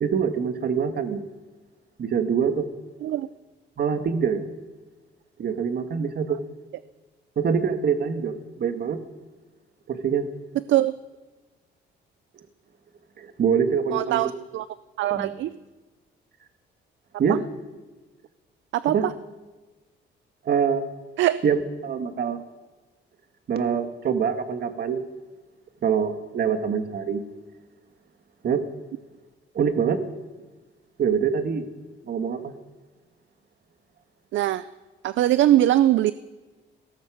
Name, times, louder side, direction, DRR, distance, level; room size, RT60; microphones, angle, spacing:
voice 1, 0.0-1.2 2.0-2.7 3.8-4.4 5.4-6.4 7.4-9.0 9.9-10.3 13.2-14.2 15.1-15.3 17.2-17.4 18.9-19.1 20.4-20.8 21.4-22.4 23.5-25.0 25.8-27.2 28.4-28.7 29.5-30.0 31.0-31.6 32.0-32.5, right 6 dB, 55° right, 8 dB, 1.6 m, -24 dB
voice 2, 13.9-14.7 15.0-15.6 17.3-17.4 18.7-18.9 21.2-21.4 34.3-34.7 35.0-36.1, right 13 dB, 70° right, 15 dB, 0.5 m, -21 dB
17.5 x 14.0 x 4.9 m, 1.3 s
cardioid pair, 90°, 20 cm